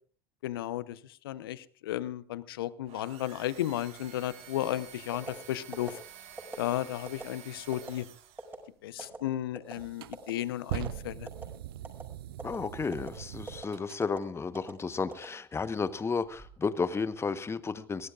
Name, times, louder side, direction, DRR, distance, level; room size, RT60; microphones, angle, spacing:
voice 1, 0.4-6.0 6.6-8.1 8.8-11.3, left 13 dB, 75° left, 17 dB, 0.8 m, -34 dB
sound 1, 2.8-8.7, right 10 dB, 55° right, 2.3 m, -50 dB
sound 2, 5.1-5.4 5.7-5.9 6.4-6.6 7.1-7.2 7.7-7.9 8.4-8.6 9.0-9.2 9.6-9.8 10.1-10.3 10.7-10.9 11.3-11.5 11.8-12.0 12.4-12.6 12.9-13.1 13.5-13.7 14.0-14.2 14.5-14.7 15.1-15.8 16.2-16.5, right 3 dB, 20° right, 6.0 m, -41 dB
sound 3, 9.0-9.1 9.7-14.0, right 13 dB, 75° right, 0.6 m, -41 dB
voice 2, 12.4-18.1, left 5 dB, 20° left, 13 dB, 1.2 m, -33 dB
23.5 x 18.0 x 2.5 m, 0.41 s
hypercardioid pair, 70°, 12 cm